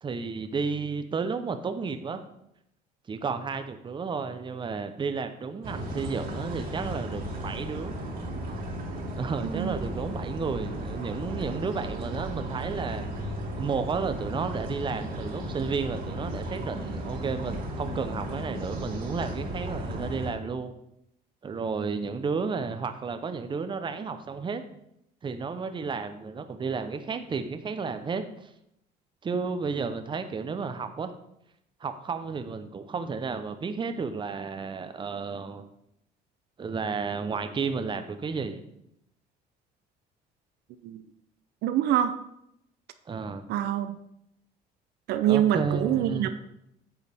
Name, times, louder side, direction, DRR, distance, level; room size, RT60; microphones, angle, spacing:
voice 1, 0.0-2.2 3.1-8.0 9.2-13.1 13.6-20.7 21.4-24.6 25.2-28.2 29.2-31.1 31.8-35.6 36.6-38.6 43.1-43.4 45.2-46.3, right 5 dB, 30° right, 9 dB, 0.8 m, -32 dB
sound 1, 5.6-20.3, right 1 dB, 60° right, 2.5 m, -35 dB
voice 2, 9.4-9.8 40.8-41.0 41.6-42.1 43.5-44.0 45.1-46.3, right 11 dB, 75° right, 10 dB, 0.6 m, -25 dB
9.5 x 7.0 x 3.5 m, 0.78 s
cardioid pair, 110°, 17 cm